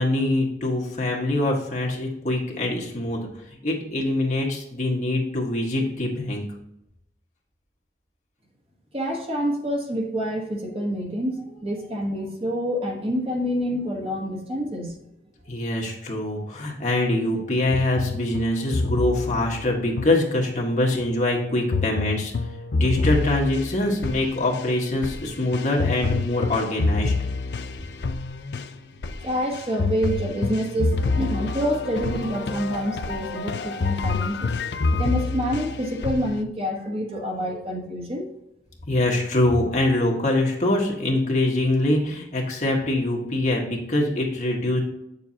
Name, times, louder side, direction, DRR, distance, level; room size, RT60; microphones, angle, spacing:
voice 1, 0.0-3.3 3.6-6.4 15.5-22.3 22.7-27.1 38.9-44.8, left 1 dB, 45° left, -1 dB, 1.5 m, -24 dB
voice 2, 8.9-15.0 29.2-34.5 35.0-38.3, equal, 35° right, 0 dB, 1.2 m, -27 dB
sound 1, 17.7-20.8 21.7-36.4, left 3 dB, 70° left, 0.5 m, -27 dB
8.4 x 6.9 x 2.8 m, 0.81 s
head